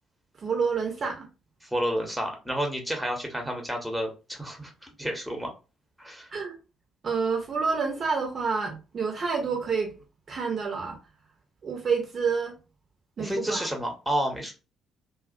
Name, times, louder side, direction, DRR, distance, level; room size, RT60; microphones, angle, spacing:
voice 1, 0.4-1.3 6.3-6.6 7.0-9.9 10.3-11.0 11.6-12.6 13.2-13.7, right 5 dB, 45° right, 0.6 m, -28 dB
voice 2, 1.6-5.5 6.0-6.3 13.2-14.5, equal, 5° right, 0.8 m, -30 dB
2.4 x 2.0 x 2.5 m
figure-of-eight pair, 45°, 0 cm